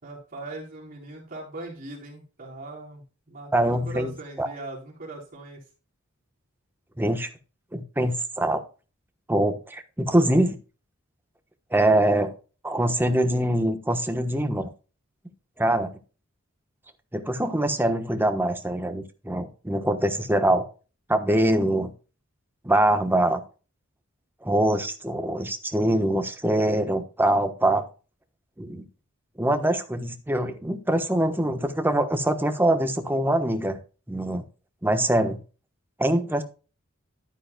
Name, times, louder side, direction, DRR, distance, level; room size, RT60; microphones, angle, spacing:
voice 1, 0.0-5.6, right 2 dB, 45° right, -3 dB, 4.1 m, -40 dB
voice 2, 3.5-4.5 7.0-7.3 7.7-8.6 9.3-10.6 11.7-12.3 12.6-14.7 15.6-15.9 17.1-20.6 21.1-21.9 22.6-23.4 24.4-27.8 28.6-28.9 29.4-33.8 34.1-34.4 34.8-35.4 36.0-36.4, right 1 dB, 10° right, 7 dB, 1.1 m, -23 dB
12.0 x 9.4 x 2.3 m, 0.34 s
head